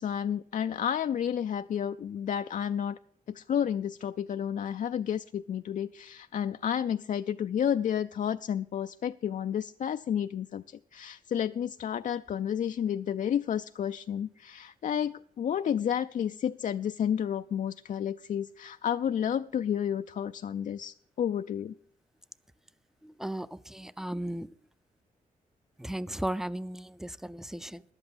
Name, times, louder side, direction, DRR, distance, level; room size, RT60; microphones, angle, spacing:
voice 1, 0.0-3.0 3.3-21.7, left 9 dB, 60° left, 0.4 m, -31 dB
voice 2, 23.0-24.5 25.8-27.8, right 1 dB, 5° right, 0.4 m, -36 dB
11.0 x 8.0 x 7.1 m
cardioid pair, 90°, 15 cm